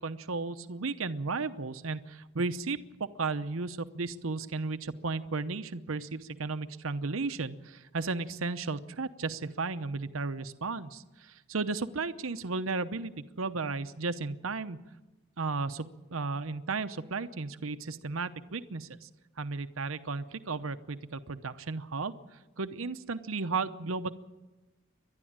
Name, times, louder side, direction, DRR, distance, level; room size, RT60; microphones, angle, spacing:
voice 1, 0.0-14.8 15.4-19.1 19.4-22.1 22.6-24.1, right 4 dB, 80° right, 11 dB, 0.9 m, -34 dB
29.5 x 12.0 x 8.8 m, 1.1 s
head